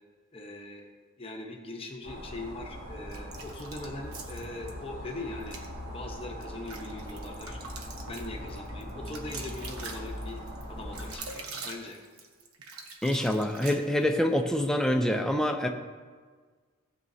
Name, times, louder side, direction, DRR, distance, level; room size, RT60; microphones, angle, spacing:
voice 1, 0.3-0.9 1.2-5.6 5.9-7.6 8.1-10.4 10.7-12.0, left 2 dB, 25° left, 0 dB, 0.9 m, -41 dB
sound 1, 2.0-11.2, equal, 40° right, 2.4 m, -41 dB
sound 2, 3.1-4.7 5.4-5.7 6.2-14.2, right 4 dB, 75° right, 1.0 m, -44 dB
voice 2, 13.0-15.7, left 1 dB, 5° left, 4 dB, 0.5 m, -26 dB
15.5 x 7.6 x 2.8 m, 1.5 s
head